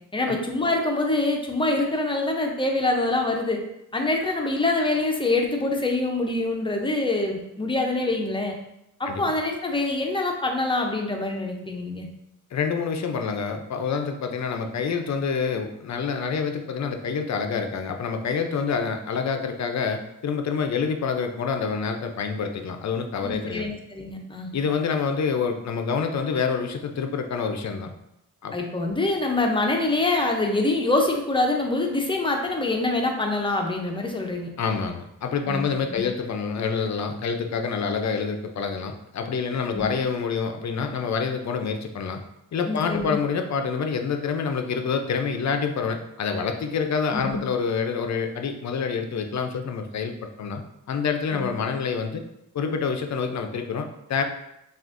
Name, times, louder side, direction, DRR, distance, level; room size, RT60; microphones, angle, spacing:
voice 1, 0.1-3.6 3.9-8.5 9.0-12.1 23.2-24.5 28.5-34.5 35.5-36.0 39.7-39.9 42.7-43.2 47.1-47.4 51.3-51.5, left 2 dB, 15° left, 2 dB, 0.6 m, -25 dB
voice 2, 12.5-23.7 24.5-27.9 28.4-28.5 34.6-42.2 42.5-50.6 50.9-52.2 52.5-54.2, left 5 dB, 60° left, 5 dB, 0.5 m, -27 dB
6.0 x 2.4 x 2.5 m, 0.84 s
wide cardioid pair, 120°, 32 cm